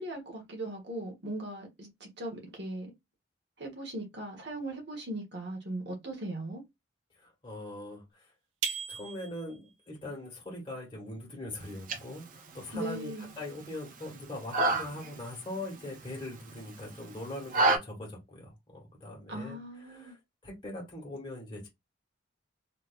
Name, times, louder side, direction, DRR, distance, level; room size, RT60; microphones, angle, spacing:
voice 1, 0.0-2.9 3.6-6.6 12.7-13.3 19.3-20.1, right 1 dB, 60° right, 1.3 m, -39 dB
voice 2, 7.2-8.3 8.9-20.2 20.4-21.7, left 1 dB, 25° left, 1.6 m, -42 dB
sound 1, 8.6-9.7, right 7 dB, 80° right, 0.7 m, -37 dB
sound 2, 11.6-17.8, right 2 dB, 45° right, 0.6 m, -32 dB
3.3 x 2.9 x 2.5 m
head